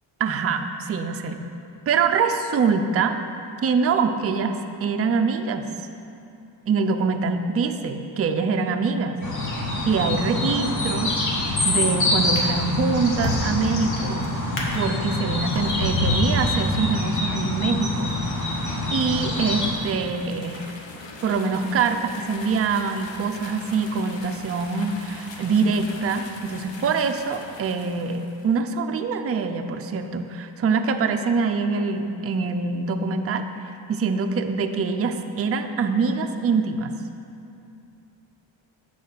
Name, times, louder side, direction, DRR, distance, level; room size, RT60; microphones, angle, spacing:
voice 1, 0.2-1.4 1.9-3.2 3.6-5.7 6.7-9.2 9.8-11.2 11.6-18.2 18.9-20.7 21.2-36.9, right 5 dB, 35° right, 6 dB, 0.4 m, -24 dB
sound 1, 9.2-19.7, left 2 dB, 35° left, 1.2 m, -26 dB
Drawer open or close, 11.2-11.6 12.1-17.3 18.0-18.2, left 1 dB, 90° left, 1.5 m, -29 dB
sound 2, 17.7-28.5, left 3 dB, 65° left, 0.9 m, -42 dB
6.6 x 4.9 x 6.7 m, 2.7 s
wide cardioid pair, 135°, 48 cm